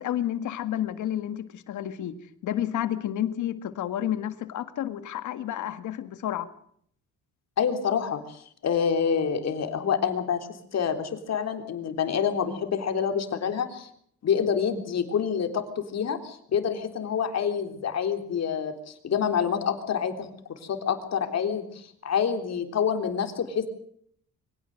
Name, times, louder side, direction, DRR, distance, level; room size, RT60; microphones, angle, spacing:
voice 1, 0.0-2.2 2.4-6.5, left 11 dB, 75° left, 11 dB, 1.9 m, -30 dB
voice 2, 7.6-13.9 14.2-23.7, left 7 dB, 60° left, 6 dB, 3.6 m, -27 dB
24.0 x 17.5 x 6.5 m, 0.64 s
cardioid pair, 90°, 30 cm